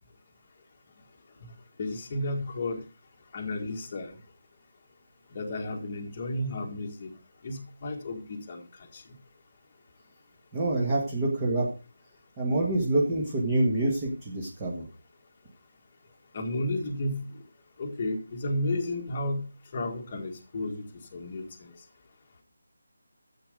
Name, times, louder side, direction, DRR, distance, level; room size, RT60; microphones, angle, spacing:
voice 1, 1.8-2.8 3.3-4.1 5.3-7.1 7.4-8.6 8.9-9.0 16.3-17.2 17.8-19.4 19.7-20.8 21.1-21.7, left 1 dB, 20° left, 2 dB, 1.6 m, -32 dB
voice 2, 10.5-11.7 12.4-14.9, right 2 dB, 10° right, -4 dB, 1.6 m, -26 dB
13.0 x 8.0 x 5.0 m, 0.32 s
figure-of-eight pair, 180°, 0 cm